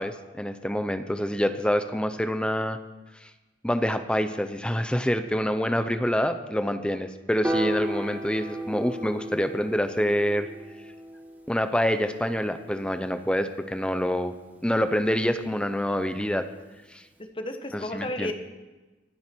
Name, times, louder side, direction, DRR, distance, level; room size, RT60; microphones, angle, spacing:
voice 1, 0.0-2.8 3.2-3.3 3.6-10.5 11.5-14.3 14.6-16.5 16.9-17.0 17.7-18.3, equal, 5° left, 9 dB, 0.7 m, -26 dB
Piano, 7.4-13.8, right 1 dB, 10° right, 2.1 m, -34 dB
voice 2, 17.2-18.3, left 1 dB, 30° left, 6 dB, 1.4 m, -33 dB
25.0 x 9.3 x 4.6 m, 1.2 s
head